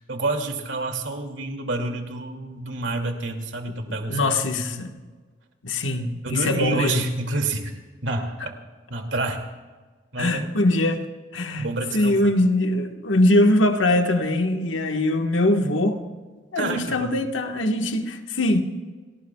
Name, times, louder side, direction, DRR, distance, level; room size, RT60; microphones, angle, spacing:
voice 1, 0.1-4.8 6.2-7.7 8.0-8.5 8.9-9.4 10.1-10.4 11.6-12.2 16.6-17.3, right 2 dB, 80° right, 2.4 m, -28 dB
voice 2, 3.9-4.9 5.6-7.0 10.2-11.0 11.3-16.0 16.5-18.6, left 1 dB, 90° left, 1.4 m, -22 dB
30.0 x 18.5 x 2.3 m
head